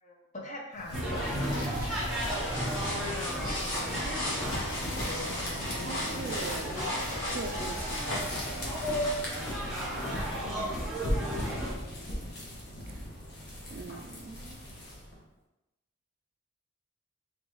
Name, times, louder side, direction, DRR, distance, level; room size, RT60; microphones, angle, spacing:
voice 1, 0.0-1.7 10.1-10.9, left 1 dB, 35° left, -1 dB, 0.7 m, -42 dB
sound 1, 0.7-15.2, left 1 dB, 50° left, 1.0 m, -39 dB
sound 2, 0.9-11.7, equal, ahead, 1.1 m, -35 dB
sound 3, 1.8-9.6, left 1 dB, 80° left, 1.4 m, -36 dB
voice 2, 3.4-4.2 5.8-6.9 7.3-8.4 12.9-13.0 13.7-14.6, right 4 dB, 45° right, 6 dB, 0.3 m, -42 dB
3.9 x 3.3 x 3.1 m, 0.96 s
head